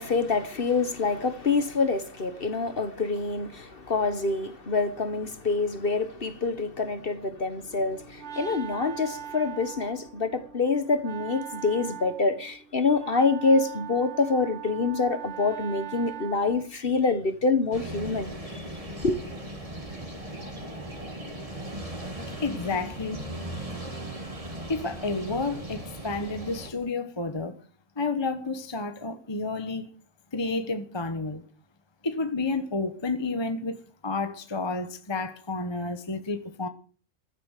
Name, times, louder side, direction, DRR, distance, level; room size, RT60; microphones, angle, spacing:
voice 1, 0.0-18.7 19.0-19.2, left 4 dB, 40° left, 1.5 m, -26 dB
Wind instrument woodwind instrument, 7.7-16.8, right 10 dB, 55° right, 1.3 m, -41 dB
sound 1, 17.7-26.7, right 1 dB, 25° right, 2.8 m, -38 dB
voice 2, 22.4-23.3 24.7-27.6 28.0-29.9 30.3-31.4 32.0-36.7, left 3 dB, 20° left, 1.2 m, -30 dB
15.5 x 12.5 x 6.7 m
omnidirectional pair, 1.5 m